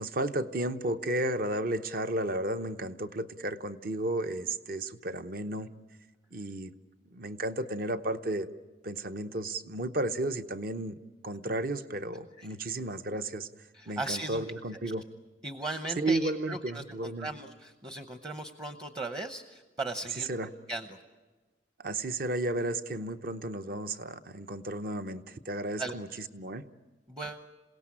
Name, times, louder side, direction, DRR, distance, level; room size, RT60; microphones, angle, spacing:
voice 1, 0.0-5.7 6.3-6.7 7.1-8.5 8.8-11.0 11.2-13.5 13.9-15.0 16.0-17.3 20.3-20.5 21.8-26.1 26.3-26.7, right 2 dB, 50° right, 9 dB, 0.8 m, -33 dB
voice 2, 13.7-14.4 14.9-15.0 15.4-21.0 25.8-26.0 27.1-27.5, right 2 dB, 20° right, 8 dB, 0.8 m, -38 dB
27.5 x 17.5 x 8.7 m, 1.3 s
head